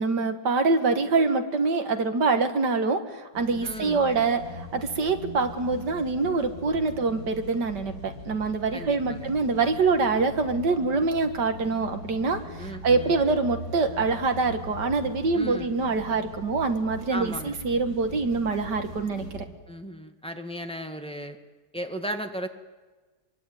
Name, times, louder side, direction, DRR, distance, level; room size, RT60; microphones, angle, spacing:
voice 1, 0.0-19.4, right 4 dB, 75° right, 7 dB, 2.4 m, -25 dB
sound 1, 3.3-19.4, left 1 dB, 50° left, 5.0 m, -41 dB
voice 2, 3.6-4.0 8.7-9.3 12.6-13.1 15.3-15.7 17.1-17.6 19.7-21.4 21.7-22.5, right 1 dB, 5° left, 5 dB, 1.7 m, -35 dB
24.0 x 24.0 x 9.3 m, 1.3 s
omnidirectional pair, 1.9 m